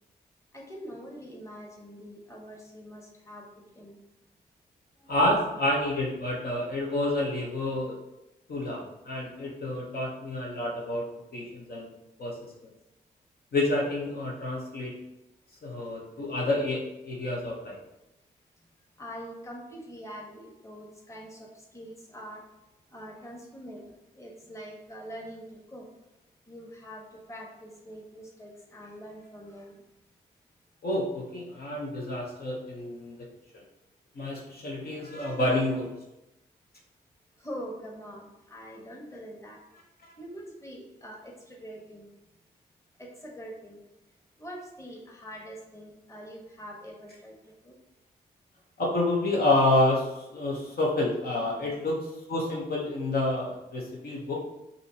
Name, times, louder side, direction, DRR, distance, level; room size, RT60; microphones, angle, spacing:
voice 1, 0.5-4.0 19.0-22.4 22.9-25.9 26.5-29.8 32.7-32.8 37.4-39.6 40.2-42.1 43.0-43.8 44.4-47.8 51.5-51.8, equal, 15° left, -2 dB, 1.3 m, -44 dB
voice 2, 5.1-7.9 8.5-11.0 11.3-11.9 12.2-12.4 13.5-14.9 15.6-17.8 30.8-33.2 33.5-33.6 34.1-35.9 48.8-52.0 52.3-54.4, left 1 dB, 60° left, -3 dB, 1.0 m, -28 dB
5.1 x 2.8 x 2.9 m, 0.94 s
supercardioid pair, 45°, 18 cm